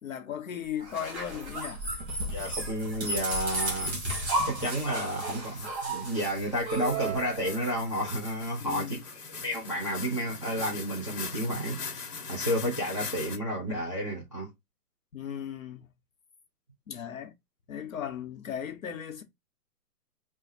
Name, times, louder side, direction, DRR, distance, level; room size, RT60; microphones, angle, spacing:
voice 1, 0.0-1.8 8.6-9.0 15.1-15.9 16.9-17.3 17.7-19.2, left 9 dB, 60° left, 1.1 m, -37 dB
sound 1, 0.8-7.7, right 1 dB, 10° right, 1.2 m, -34 dB
voice 2, 2.3-4.0 4.4-9.0 9.4-14.5, equal, 20° left, 0.5 m, -31 dB
sound 2, 5.4-13.4, left 5 dB, 90° left, 1.2 m, -41 dB
sound 3, 6.6-8.3, right 12 dB, 55° right, 0.6 m, -37 dB
3.7 x 2.4 x 4.3 m
hypercardioid pair, 165°, 46 cm